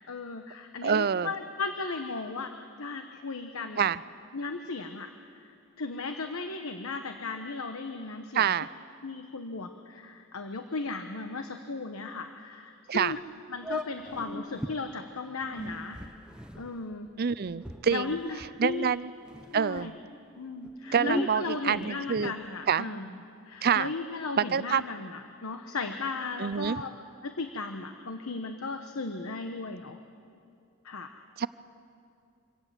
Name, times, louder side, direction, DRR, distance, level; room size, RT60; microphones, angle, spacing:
voice 1, 0.0-2.5 2.8-3.9 4.3-5.1 5.8-8.5 9.0-13.2 13.5-16.0 16.5-17.1 17.9-18.9 19.5-19.9 20.4-23.1 23.5-26.9 27.2-30.0 30.8-31.2, left 3 dB, 80° left, 7 dB, 1.0 m, -36 dB
voice 2, 0.8-1.3 3.8-4.0 8.3-8.7 12.9-13.2 17.2-18.2 18.6-19.1 19.5-19.9 20.9-22.3 22.7-22.9 23.6-23.9 24.4-24.8 26.4-26.8 31.4-31.5, right 7 dB, 45° right, 17 dB, 0.5 m, -26 dB
sound 1, 13.0-13.2 13.6-14.8 15.4-18.9 19.2-19.9 20.5-22.5, left 1 dB, 5° right, 0.7 m, -39 dB
25.0 x 17.0 x 7.4 m, 2.5 s
head